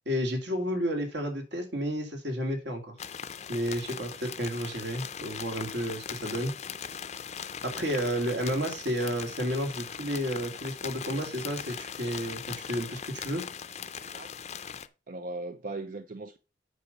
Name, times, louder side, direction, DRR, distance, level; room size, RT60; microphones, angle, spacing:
voice 1, 0.1-3.0 3.5-6.5 7.6-13.4, equal, 65° right, 2.6 m, -31 dB
sound 1, 3.0-14.9, left 7 dB, 35° left, 0.5 m, -40 dB
voice 2, 14.0-14.3 15.1-16.4, right 2 dB, 45° right, 0.5 m, -38 dB
8.2 x 6.0 x 5.3 m
head